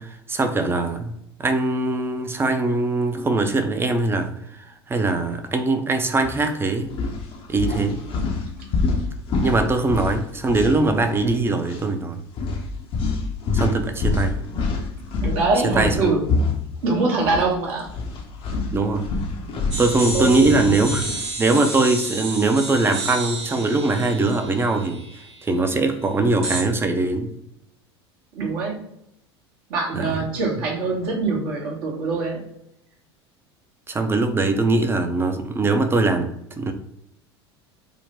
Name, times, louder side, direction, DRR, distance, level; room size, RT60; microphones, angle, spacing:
voice 1, 0.0-4.3 4.9-6.9 7.5-8.0 9.4-12.2 13.5-14.4 15.6-16.1 18.7-19.1 19.8-21.0 21.4-25.0 25.4-27.3 29.9-30.1 33.9-36.7, right 3 dB, 15° right, 6 dB, 0.5 m, -21 dB
sound 1, 6.2-6.4 6.9-11.4 11.6-11.8 12.4-17.5 17.8-21.2, left 3 dB, 40° left, 0.6 m, -26 dB
voice 2, 15.2-16.3 16.8-17.9 20.1-20.7 28.3-28.8 29.7-32.5, right 3 dB, 60° right, -2 dB, 1.1 m, -23 dB
sound 2, 19.7-25.4 26.4-26.6, right 2 dB, 85° right, 0.8 m, -31 dB
3.7 x 2.1 x 2.8 m, 0.78 s
hypercardioid pair, 75°, 14 cm